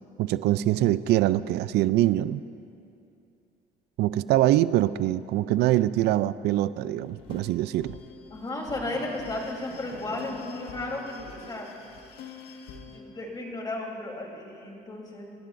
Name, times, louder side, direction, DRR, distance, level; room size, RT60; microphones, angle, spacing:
voice 1, 0.2-2.4 4.0-8.0, right 14 dB, 80° right, 15 dB, 0.4 m, -24 dB
sound 1, 7.0-13.0, left 5 dB, 80° left, 1.7 m, -45 dB
voice 2, 8.3-11.7 12.9-15.3, left 2 dB, 25° left, -1 dB, 3.5 m, -34 dB
29.5 x 14.5 x 2.6 m, 2.6 s
cardioid pair, 110°, 17 cm